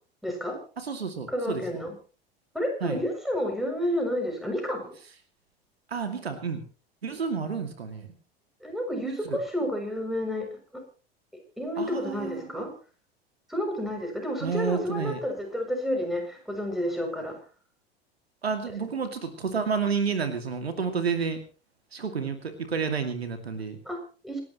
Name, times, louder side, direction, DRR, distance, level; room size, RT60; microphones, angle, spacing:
voice 1, 0.2-0.6 1.3-1.9 2.5-4.9 8.6-10.5 10.7-10.8 11.6-12.7 13.5-17.4 23.8-24.4, equal, ahead, 2 dB, 7.1 m, -30 dB
voice 2, 0.8-1.6 2.8-3.0 5.9-6.6 7.0-8.1 9.0-9.4 11.8-12.6 14.4-15.2 18.4-21.4 21.9-23.8, right 5 dB, 75° right, 8 dB, 2.4 m, -30 dB
27.5 x 12.0 x 3.1 m, 0.35 s
figure-of-eight pair, 80°, 31 cm